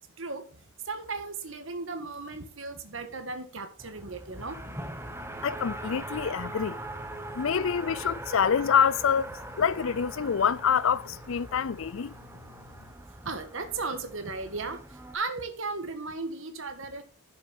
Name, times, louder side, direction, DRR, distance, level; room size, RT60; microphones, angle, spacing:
voice 1, 0.2-0.5 0.8-4.6 13.2-14.8 15.1-17.0, right 3 dB, 65° right, 1.6 m, -36 dB
Race car auto racing, 3.8-15.1, right 1 dB, 10° right, 0.9 m, -41 dB
voice 2, 5.4-6.8 7.3-9.3 9.6-12.2, left 7 dB, 65° left, 0.4 m, -26 dB
11.5 x 6.5 x 4.1 m
head